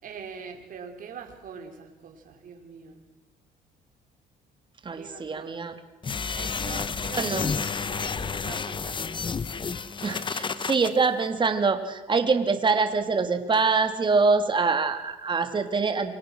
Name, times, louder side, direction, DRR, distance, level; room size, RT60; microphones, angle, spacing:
voice 1, 0.0-3.0 4.9-5.8 6.3-7.4 7.8-9.3, right 6 dB, 55° right, 3 dB, 5.2 m, -43 dB
voice 2, 4.8-5.7 7.2-7.5 10.0-16.1, right 4 dB, 30° right, 7 dB, 3.0 m, -24 dB
sound 1, 6.0-10.9, left 5 dB, 30° left, 1.2 m, -30 dB
28.5 x 25.0 x 6.4 m, 1.0 s
cardioid pair, 110°, 17 cm